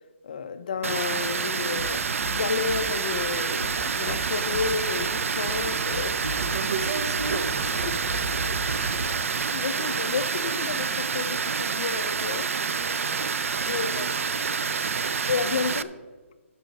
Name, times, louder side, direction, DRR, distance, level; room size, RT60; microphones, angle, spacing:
voice 1, 0.2-2.0 2.3-6.2 7.8-8.0 8.5-8.7 9.5-12.5 13.7-14.2 15.3-16.0, left 5 dB, 35° left, 0.5 m, -31 dB
Water, 0.8-15.8, right 5 dB, 70° right, 0.4 m, -28 dB
sound 1, 1.7-2.4 2.7-9.1, right 1 dB, 35° right, 1.1 m, -36 dB
voice 2, 6.2-7.9 8.6-9.9 13.5-14.2 14.6-15.2, right 4 dB, 85° right, 0.9 m, -36 dB
13.0 x 5.5 x 5.2 m
hypercardioid pair, 180°, 8 cm